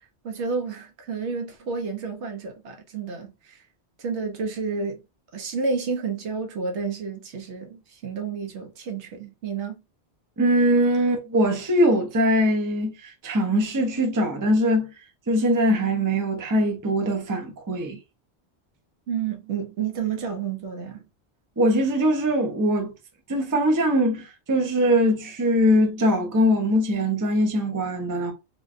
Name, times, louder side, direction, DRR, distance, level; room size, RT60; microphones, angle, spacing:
voice 1, 0.2-3.6 4.0-5.0 5.3-9.8 19.1-21.0, right 5 dB, 80° right, 1.0 m, -30 dB
voice 2, 10.4-14.9 15.3-18.0 21.6-22.9 23.3-28.3, equal, 25° right, 0.5 m, -22 dB
3.1 x 2.2 x 2.4 m
omnidirectional pair, 1.2 m